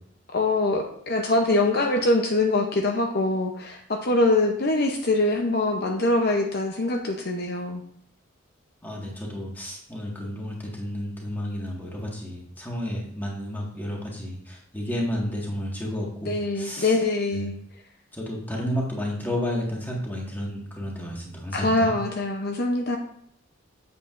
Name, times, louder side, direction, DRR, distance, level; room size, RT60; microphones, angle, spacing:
voice 1, 0.3-7.8 16.2-17.5 21.5-23.0, left 2 dB, 50° left, 3 dB, 0.7 m, -23 dB
voice 2, 8.8-16.9 17.3-17.5 18.1-21.9, equal, 10° left, -2 dB, 1.7 m, -31 dB
8.2 x 7.8 x 2.5 m, 0.67 s
head